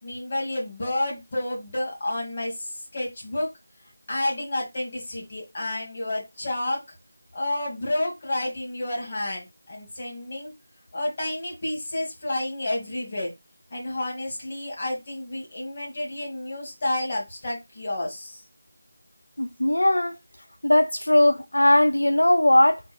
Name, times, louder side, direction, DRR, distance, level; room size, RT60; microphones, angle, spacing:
voice 1, 0.0-3.5 4.1-6.8 7.3-10.5 10.9-13.3 13.7-18.4, left 1 dB, 40° left, 2.0 m, -30 dB
voice 2, 19.4-20.2 20.6-22.8, left 1 dB, 75° left, 0.4 m, -19 dB
3.7 x 2.5 x 4.3 m
figure-of-eight pair, 165°, 0 cm